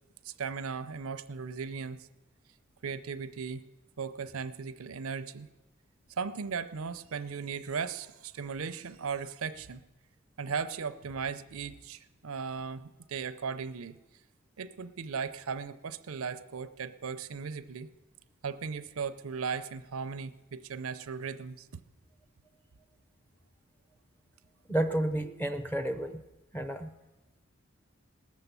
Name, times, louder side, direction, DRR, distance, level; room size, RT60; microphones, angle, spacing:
voice 1, 0.2-2.1 2.8-3.7 4.0-5.5 6.2-9.8 10.4-14.0 14.6-17.9 18.4-21.7, right 5 dB, 80° right, 12 dB, 0.6 m, -37 dB
voice 2, 24.7-26.2 26.5-26.9, right 1 dB, 10° left, 9 dB, 0.6 m, -31 dB
19.0 x 7.1 x 6.8 m, 1.0 s
head